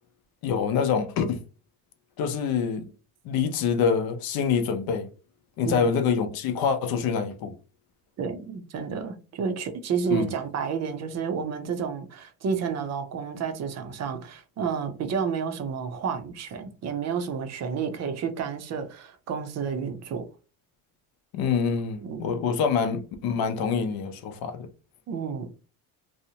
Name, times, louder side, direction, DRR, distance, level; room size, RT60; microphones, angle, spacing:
voice 1, 0.4-1.4 2.2-2.9 3.2-5.1 5.6-7.5 10.1-10.3 21.3-24.7, left 6 dB, 60° left, 0.6 m, -26 dB
voice 2, 8.2-20.3 22.0-22.2 25.1-25.5, right 6 dB, 40° right, 0.5 m, -30 dB
2.7 x 2.0 x 2.7 m
cardioid pair, 130°, 40 cm